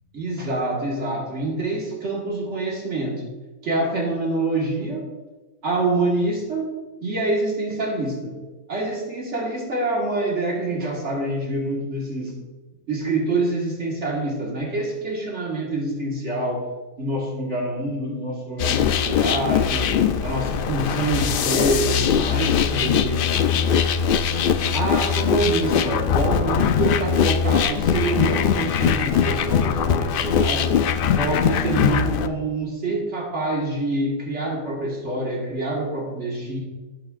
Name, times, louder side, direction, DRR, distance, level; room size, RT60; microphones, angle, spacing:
voice 1, 0.1-3.2 3.6-5.1 5.6-6.7 7.0-8.4 8.7-12.4 12.9-16.7 17.0-19.9 20.2-23.5 24.7-30.7 31.1-36.6, right 2 dB, 55° right, -2 dB, 1.9 m, -26 dB
sound 1, 18.6-32.3, left 7 dB, 70° left, 0.5 m, -21 dB
12.5 x 8.7 x 2.5 m, 1.2 s
omnidirectional pair, 1.5 m